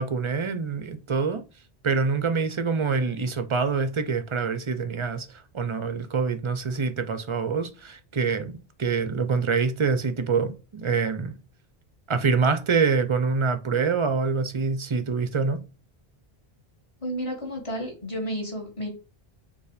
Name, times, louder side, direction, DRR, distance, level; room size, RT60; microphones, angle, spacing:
voice 1, 0.0-1.4 1.8-11.4 12.1-15.6, right 5 dB, 35° right, 0.6 m, -25 dB
voice 2, 17.0-18.9, equal, 30° left, 2.3 m, -31 dB
7.0 x 2.7 x 5.0 m
omnidirectional pair, 1.1 m